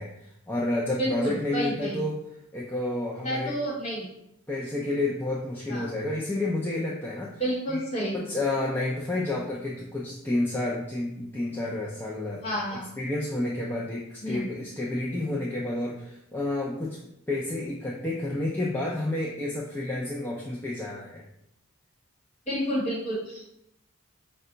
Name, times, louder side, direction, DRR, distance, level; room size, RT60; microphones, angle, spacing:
voice 1, 0.0-2.2 2.5-3.5 4.5-7.3 7.7-7.8 8.1-12.4 12.7-17.0 17.3-21.2, left 2 dB, 10° left, -5 dB, 0.4 m, -30 dB
voice 2, 1.0-2.1 3.2-4.1 5.7-5.9 7.4-8.2 12.4-12.9 14.2-14.5 22.5-23.4, equal, 30° left, -5 dB, 1.5 m, -30 dB
5.3 x 2.2 x 3.8 m, 0.79 s
head